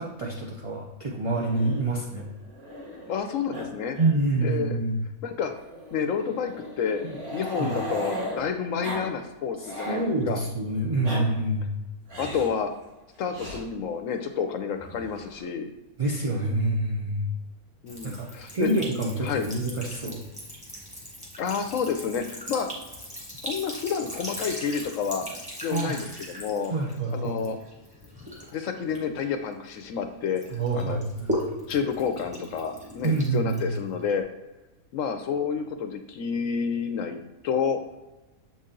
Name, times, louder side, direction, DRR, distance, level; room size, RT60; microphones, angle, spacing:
voice 1, 0.0-2.3 4.0-5.0 7.0-7.2 7.6-7.8 9.9-11.7 16.0-17.3 18.0-20.2 25.7-26.0 26.7-27.4 30.5-31.5 33.0-33.7, right 2 dB, 35° right, -4 dB, 0.5 m, -27 dB
Growling, 1.3-3.2 3.5-3.7 3.9-4.1 4.4-4.5 5.5-8.4 8.8-9.1 9.4-10.1 10.8-11.2 12.1-12.5 13.3-13.6 14.7-15.4, equal, 90° right, 2.5 m, -36 dB
voice 2, 3.1-4.0 4.4-4.8 5.2-5.5 5.9-7.0 7.3-10.4 12.2-12.7 13.2-15.7 17.8-18.7 19.2-19.5 21.4-22.7 23.4-25.2 25.6-26.7 27.1-27.6 28.5-31.0 31.7-34.2 34.9-37.8, left 6 dB, 70° left, 7 dB, 0.9 m, -29 dB
Sink (filling or washing) / Trickle dribble, 17.9-30.0 30.4-34.2, equal, 5° right, 1.6 m, -39 dB
7.2 x 4.1 x 3.8 m, 1.1 s
omnidirectional pair, 1.5 m